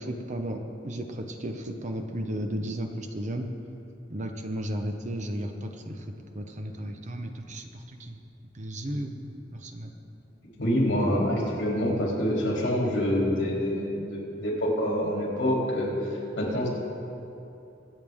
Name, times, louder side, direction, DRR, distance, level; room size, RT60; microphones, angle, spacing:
voice 1, 0.0-3.5 4.1-6.1 6.3-8.2 8.5-9.9, right 1 dB, 40° right, 4 dB, 0.9 m, -34 dB
voice 2, 10.6-16.7, equal, 80° left, -3 dB, 3.0 m, -26 dB
23.5 x 8.1 x 3.6 m, 2.9 s
head